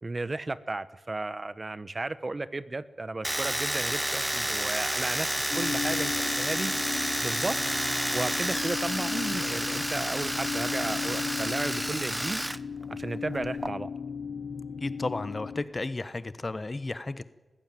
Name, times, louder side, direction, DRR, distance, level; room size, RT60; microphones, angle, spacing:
voice 1, 0.0-6.7 7.2-7.6 8.1-12.4 12.9-13.9, right 2 dB, 35° right, 14 dB, 1.0 m, -34 dB
Domestic sounds home sounds, 3.2-12.6 12.8-13.7, right 1 dB, 10° right, 0.8 m, -30 dB
sound 1, 5.5-15.6, left 6 dB, 70° left, 1.3 m, -36 dB
voice 2, 14.8-17.2, left 2 dB, 35° left, 14 dB, 1.1 m, -33 dB
22.5 x 15.5 x 9.2 m, 1.2 s
cardioid pair, 60°, 0 cm